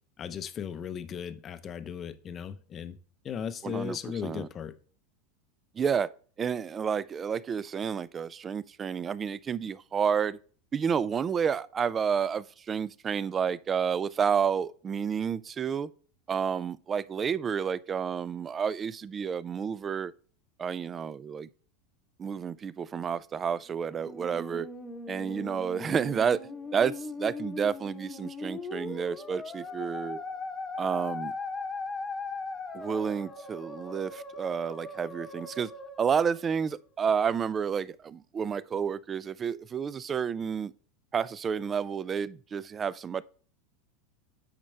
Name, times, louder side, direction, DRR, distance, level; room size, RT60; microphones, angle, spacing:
voice 1, 0.2-3.0 3.2-4.7, left 8 dB, 30° left, 0.6 m, -37 dB
voice 2, 3.6-4.5 5.7-10.4 10.7-15.9 16.3-20.1 20.6-21.5 22.2-24.7 25.1-26.4 26.7-30.2 30.8-31.3 32.7-35.7 36.0-40.7 41.1-43.2, right 7 dB, 25° right, 0.3 m, -30 dB
Musical instrument, 23.7-37.1, left 3 dB, 15° left, 1.0 m, -39 dB
8.8 x 5.2 x 3.3 m
supercardioid pair, 130°, 0 cm